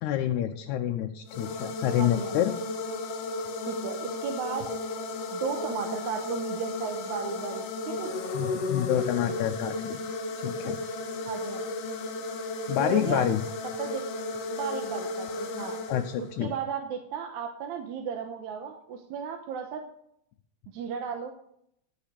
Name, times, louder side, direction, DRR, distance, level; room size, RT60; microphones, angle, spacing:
voice 1, 0.0-2.6 8.3-10.0 10.4-10.8 12.7-13.4 15.9-16.5, left 11 dB, 85° left, 4 dB, 2.1 m, -27 dB
sound 1, 1.3-16.5, left 2 dB, 65° left, 2.1 m, -34 dB
voice 2, 2.0-2.4 3.7-4.6 5.3-8.1 11.3-11.6 12.8-13.3 13.8-14.0 14.5-15.8 16.2-19.8 20.7-21.3, right 7 dB, 85° right, 4 dB, 2.3 m, -35 dB
11.5 x 8.7 x 5.0 m, 0.71 s
omnidirectional pair, 3.3 m